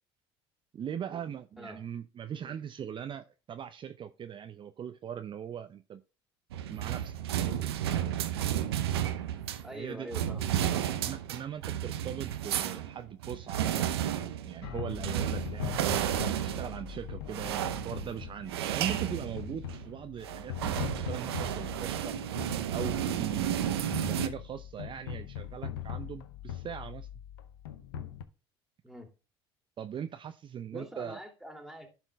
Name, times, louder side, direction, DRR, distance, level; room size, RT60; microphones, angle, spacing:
voice 1, 0.7-6.0 6.7-7.8 9.7-10.1 11.0-22.2 22.7-23.6 24.1-27.1 29.8-31.2, right 9 dB, 40° right, 0.6 m, -40 dB
sound 1, 6.5-9.7 10.1-19.9 20.2-24.3, right 11 dB, 90° right, 0.6 m, -32 dB
voice 2, 9.6-10.8 28.8-29.1 30.7-31.9, equal, ahead, 2.5 m, -44 dB
sound 2, 14.6-28.2, left 9 dB, 85° left, 0.7 m, -41 dB
11.0 x 4.5 x 3.4 m
hypercardioid pair, 70°, 13 cm